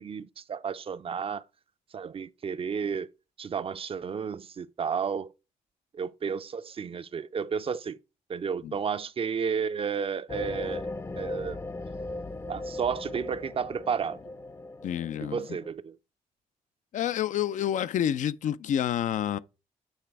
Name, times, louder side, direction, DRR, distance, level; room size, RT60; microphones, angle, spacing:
voice 1, 0.0-1.4 1.9-3.1 3.4-5.3 5.9-8.0 8.3-10.9 11.2-11.6 12.5-14.2 15.2-16.0, right 6 dB, 45° right, 0.5 m, -32 dB
sound 1, 10.3-15.7, left 2 dB, 20° left, 0.5 m, -38 dB
voice 2, 14.8-15.6 16.9-19.4, left 10 dB, 70° left, 0.5 m, -29 dB
8.0 x 3.3 x 4.6 m
supercardioid pair, 60°, 13 cm